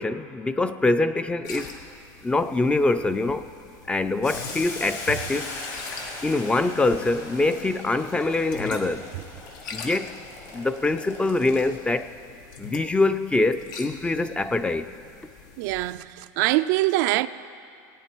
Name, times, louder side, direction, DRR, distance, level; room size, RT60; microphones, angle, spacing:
voice 1, 0.0-1.8 2.2-3.5 3.9-5.6 6.2-9.1 9.7-10.1 10.5-12.1 12.6-14.9, left 2 dB, 10° left, 0.4 m, -24 dB
sound 1, 1.4-15.9, left 4 dB, 85° left, 1.2 m, -43 dB
Boiling, 4.2-12.0, left 3 dB, 65° left, 3.5 m, -39 dB
voice 2, 15.6-17.3, right 17 dB, 70° right, 0.4 m, -23 dB
18.0 x 9.0 x 4.5 m
supercardioid pair, 125°, 10 cm